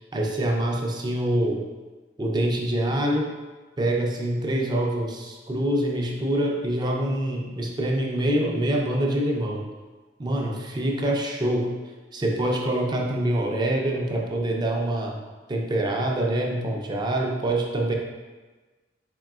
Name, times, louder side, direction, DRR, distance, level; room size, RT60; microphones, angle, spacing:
voice 1, 0.1-1.6 2.2-3.3 3.8-9.7 10.2-11.7 12.1-15.2 15.5-17.9, right 1 dB, 25° right, 0 dB, 0.4 m, -25 dB
3.9 x 3.7 x 2.3 m, 1.3 s
head